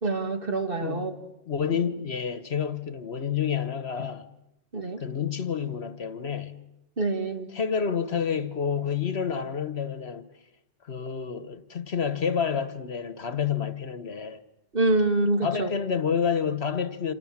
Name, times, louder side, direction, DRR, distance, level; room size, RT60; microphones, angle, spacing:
voice 1, 0.0-1.1 4.7-5.0 7.0-7.5 14.7-15.7, right 2 dB, 50° right, 2.3 m, -26 dB
voice 2, 0.8-1.1 1.5-4.3 5.0-6.5 7.5-10.2 10.8-14.4 15.4-17.1, left 7 dB, 60° left, 1.4 m, -29 dB
28.0 x 27.5 x 7.4 m
omnidirectional pair, 1.3 m